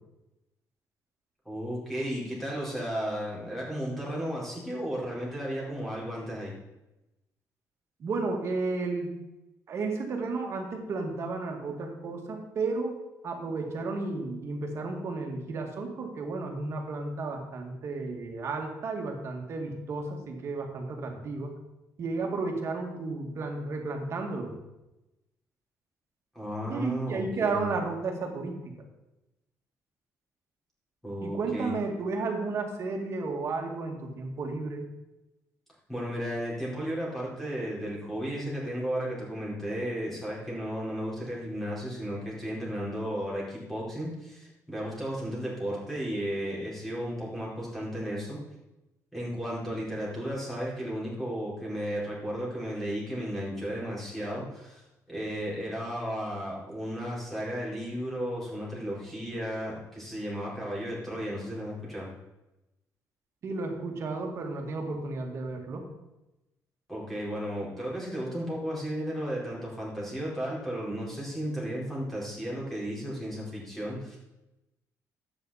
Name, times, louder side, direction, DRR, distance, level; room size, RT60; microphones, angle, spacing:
voice 1, 1.4-6.5 26.3-27.7 31.0-31.7 35.9-48.4 49.1-62.1 66.9-74.2, equal, 5° left, -6 dB, 4.5 m, -34 dB
voice 2, 8.0-9.2 9.7-13.0 13.2-21.5 22.0-24.5 26.7-28.7 31.2-34.9 63.4-65.9, right 3 dB, 50° right, 2 dB, 2.1 m, -33 dB
12.0 x 9.0 x 4.3 m, 0.96 s
cardioid pair, 135°, 6 cm